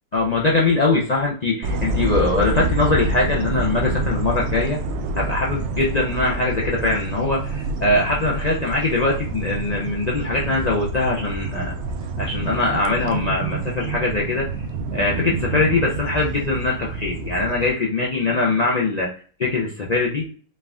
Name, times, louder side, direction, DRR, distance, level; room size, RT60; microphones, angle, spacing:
voice 1, 0.1-4.8 5.2-11.7 12.2-14.6 14.9-19.1 19.4-20.3, left 2 dB, 55° left, -3 dB, 0.4 m, -22 dB
sound 1, 1.6-17.7, right 2 dB, 65° right, 0.7 m, -27 dB
4.3 x 2.4 x 3.4 m, 0.43 s
omnidirectional pair, 1.5 m